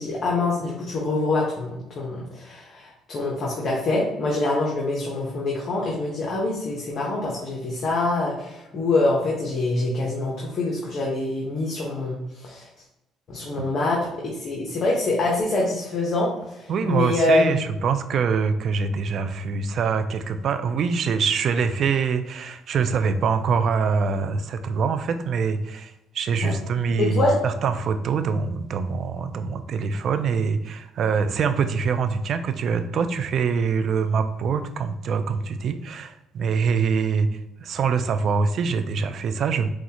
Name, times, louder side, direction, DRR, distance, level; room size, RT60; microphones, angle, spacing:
voice 1, 0.0-12.7 13.3-14.1 14.4-17.6 26.4-26.5 27.0-27.3, left 2 dB, 50° left, -4 dB, 1.1 m, -25 dB
voice 2, 16.7-39.7, right 5 dB, 55° right, 10 dB, 0.4 m, -24 dB
6.4 x 2.4 x 2.9 m, 0.88 s
cardioid pair, 95°, 0 cm